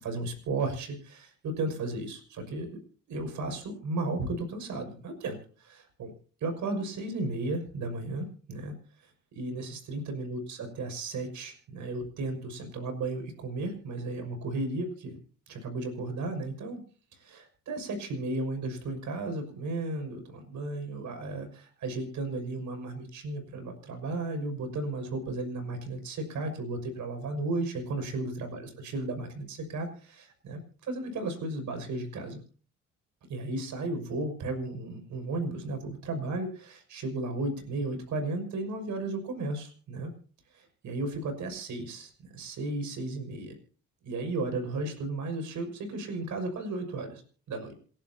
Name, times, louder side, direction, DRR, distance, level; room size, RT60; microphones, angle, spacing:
voice 1, 0.0-2.7 3.1-6.1 6.4-8.7 9.0-15.2 15.5-16.8 17.1-32.4 33.3-40.1 40.5-43.6 44.0-47.2 47.5-47.7, right 2 dB, 75° right, 6 dB, 5.9 m, -34 dB
27.5 x 12.0 x 2.9 m, 0.41 s
cardioid pair, 90°, 30 cm